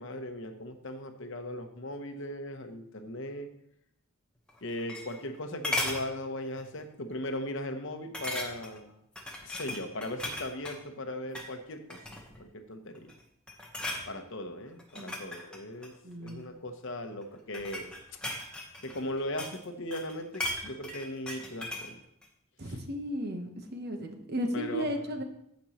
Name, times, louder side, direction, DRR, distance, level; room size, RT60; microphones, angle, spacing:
voice 1, 0.0-3.5 4.6-9.0 9.4-12.0 12.4-13.1 14.1-17.9 18.8-22.0 22.7-22.8 24.5-24.9, left 1 dB, 55° left, 6 dB, 0.9 m, -38 dB
sound 1, 4.5-5.4 5.6-6.1 6.6-6.8 7.1-7.2 8.1-8.8 9.2-10.8 11.2-11.5 11.9-12.4 12.9-13.2 13.5-14.1 14.8-16.4 17.2-19.6 19.9-21.9 22.2-22.3, left 1 dB, 5° left, 1.0 m, -37 dB
voice 2, 16.0-16.5 22.6-25.2, equal, 45° right, 4 dB, 1.0 m, -35 dB
14.5 x 5.2 x 3.0 m, 0.76 s
head